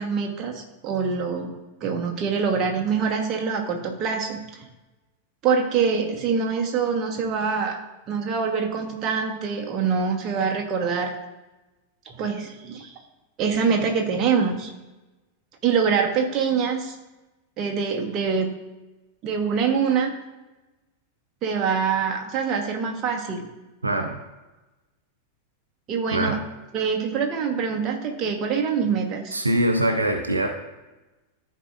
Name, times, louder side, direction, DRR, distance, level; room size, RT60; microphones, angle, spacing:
voice 1, 0.0-1.5 1.8-4.4 5.4-7.8 8.1-11.2 12.1-13.0 13.4-14.7 15.6-16.9 17.6-18.5 19.2-20.1 21.4-23.5 25.9-26.4 26.7-29.4, right 6 dB, 35° right, 2 dB, 1.2 m, -24 dB
voice 2, 23.8-24.2 26.1-26.4 29.3-30.5, right 1 dB, 80° right, 4 dB, 0.7 m, -23 dB
14.0 x 4.7 x 2.5 m, 1.1 s
figure-of-eight pair, 90°, 0 cm